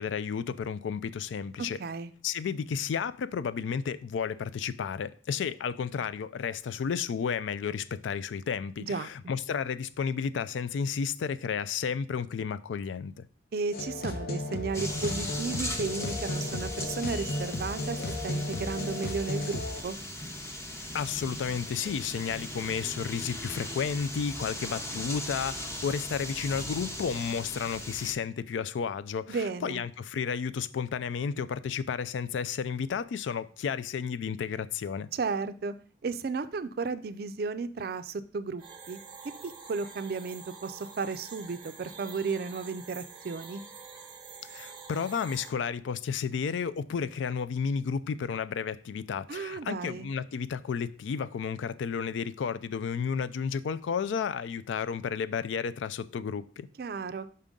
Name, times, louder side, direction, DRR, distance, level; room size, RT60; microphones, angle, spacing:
voice 1, 0.0-1.8 2.2-13.3 20.9-35.1 44.5-56.7, left 6 dB, 90° left, 0.3 m, -32 dB
voice 2, 1.6-2.1 8.8-9.1 13.5-18.0 18.2-20.0 29.3-29.9 35.1-35.7 36.0-39.0 39.4-43.6 49.3-50.1 56.8-57.3, right 4 dB, 55° right, 0.4 m, -34 dB
sound 1, 13.7-19.8, left 2 dB, 55° left, 0.7 m, -34 dB
sound 2, 14.7-28.1, left 1 dB, 15° left, 0.7 m, -38 dB
sound 3, 38.6-45.5, right 5 dB, 25° right, 0.8 m, -47 dB
5.5 x 5.2 x 3.6 m
head